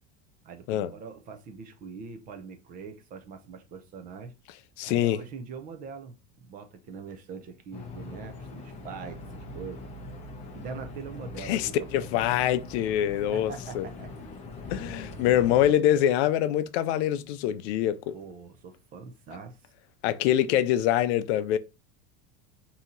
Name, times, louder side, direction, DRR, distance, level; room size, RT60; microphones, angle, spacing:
voice 1, 0.4-4.3 4.8-9.8 10.5-12.2 13.3-14.1 14.6-14.7 15.6-16.0 18.1-19.7, right 5 dB, 25° right, 0.4 m, -43 dB
voice 2, 4.8-5.2 11.4-13.8 14.7-18.1 20.0-21.6, left 11 dB, 75° left, 0.5 m, -25 dB
sound 1, 7.7-15.7, left 2 dB, 20° left, 0.6 m, -42 dB
4.1 x 2.8 x 3.7 m
cardioid pair, 170°, 33 cm